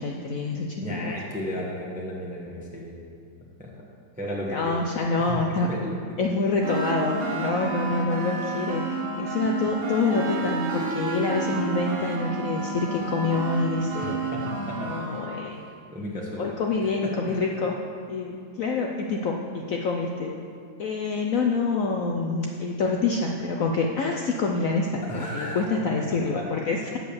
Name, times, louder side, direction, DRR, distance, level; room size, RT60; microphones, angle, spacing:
voice 1, 0.0-1.1 4.5-5.7 6.2-14.2 14.8-15.6 16.4-17.8 18.1-20.3 20.8-27.0, left 3 dB, 70° left, 1 dB, 0.8 m, -26 dB
voice 2, 0.8-3.0 3.6-3.9 4.2-4.8 5.3-5.4 5.7-6.0 14.0-15.0 15.9-16.5 17.0-17.4 25.0-25.6 26.3-26.4 26.7-26.8, left 1 dB, 5° right, -3 dB, 0.8 m, -34 dB
sound 1, 6.6-15.5, right 3 dB, 45° right, 0.8 m, -30 dB
7.5 x 7.3 x 7.0 m, 2.3 s
omnidirectional pair, 2.1 m